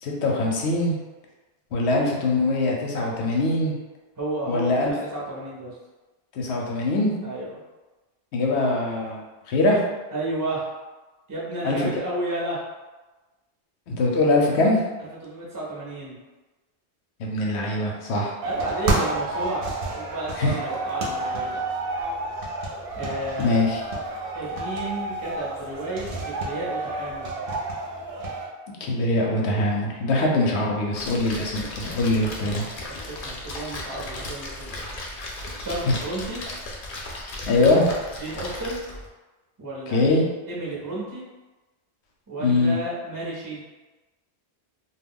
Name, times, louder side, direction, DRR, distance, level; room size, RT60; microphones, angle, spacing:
voice 1, 0.0-0.9 1.7-3.7 4.5-4.9 6.3-7.1 8.3-9.2 9.5-9.8 11.6-11.9 13.9-14.8 17.2-18.3 20.4-20.5 23.4-23.8 28.8-32.6 35.9-36.0 37.0-37.1 37.5-37.9 39.9-40.2 42.4-42.8, left 2 dB, 85° left, -1 dB, 0.9 m, -22 dB
voice 2, 4.2-5.7 7.2-7.6 10.1-10.7 11.3-12.6 15.2-16.2 18.4-21.6 22.9-23.6 24.3-27.4 32.7-32.8 33.1-34.9 35.6-36.5 37.5-37.7 38.2-38.8 39.6-40.0 40.5-41.2 42.3-43.6, right 1 dB, 25° right, -6 dB, 0.5 m, -32 dB
sound 1, 18.4-28.5, right 2 dB, 60° right, 0.7 m, -30 dB
Splash splatter, 30.9-39.1, left 1 dB, 60° left, 0.6 m, -36 dB
2.3 x 2.2 x 3.5 m, 1.2 s
omnidirectional pair, 1.1 m